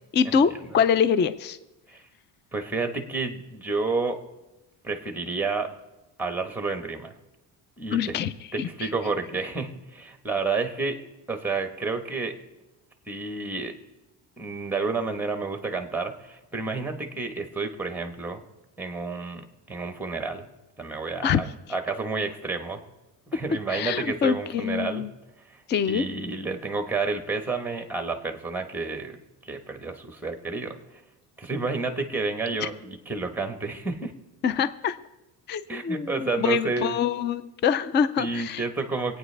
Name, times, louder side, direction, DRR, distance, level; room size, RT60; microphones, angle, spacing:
voice 1, 0.1-1.6 7.9-8.3 8.6-8.9 21.2-21.4 23.7-25.1 25.7-26.1 32.6-32.7 34.4-35.0 35.5-38.6, left 7 dB, 25° left, 14 dB, 0.4 m, -25 dB
voice 2, 2.5-4.2 4.8-5.7 6.2-7.1 7.8-8.1 8.5-11.0 11.3-12.3 13.1-13.7 14.4-18.4 18.8-20.5 20.8-21.4 21.7-22.8 23.3-25.1 25.4-31.0 31.4-34.1 35.7-37.0 38.2-39.2, right 3 dB, 5° right, 6 dB, 1.2 m, -30 dB
24.0 x 9.1 x 3.3 m, 1.0 s
cardioid pair, 140°, 42 cm